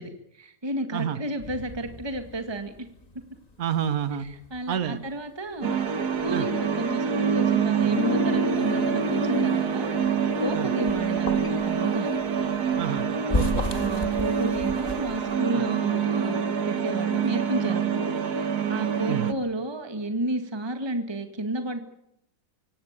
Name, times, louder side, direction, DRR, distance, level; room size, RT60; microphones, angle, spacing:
voice 1, 0.0-2.7 4.2-5.7 6.2-9.9 10.4-12.1 13.7-21.8, right 1 dB, 15° right, 6 dB, 1.8 m, -32 dB
sound 1, 1.4-9.3 9.6-15.4, left 2 dB, 25° left, 2.0 m, -36 dB
voice 2, 3.6-4.3 4.7-5.0 6.3-6.4 10.5-10.7 12.8-13.1 13.3-13.6 15.5-15.6 19.1-19.3, right 9 dB, 65° right, 13 dB, 1.7 m, -28 dB
sound 2, 5.6-19.3, right 7 dB, 80° right, 2.1 m, -26 dB
Guitar, 7.8-13.8, left 6 dB, 60° left, 1.8 m, -36 dB
25.5 x 18.0 x 8.9 m, 0.80 s
omnidirectional pair, 1.7 m